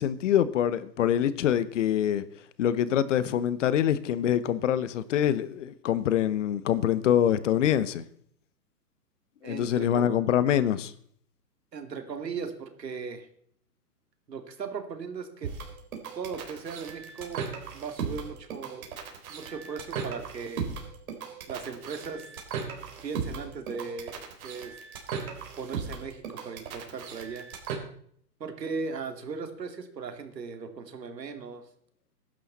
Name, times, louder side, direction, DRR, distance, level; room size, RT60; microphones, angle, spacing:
voice 1, 0.0-2.2 2.6-8.0 9.4-10.9, left 10 dB, 45° left, 1.0 m, -25 dB
voice 2, 9.4-10.1 11.7-13.3 14.3-15.5 16.2-17.4 17.7-18.9 19.3-20.7 21.5-22.3 23.0-24.7 25.6-27.4 28.4-31.6, right 5 dB, 80° right, 2.9 m, -37 dB
sound 1, 15.4-27.8, right 6 dB, 55° right, 4.0 m, -37 dB
15.5 x 11.5 x 4.2 m
hypercardioid pair, 135°, 49 cm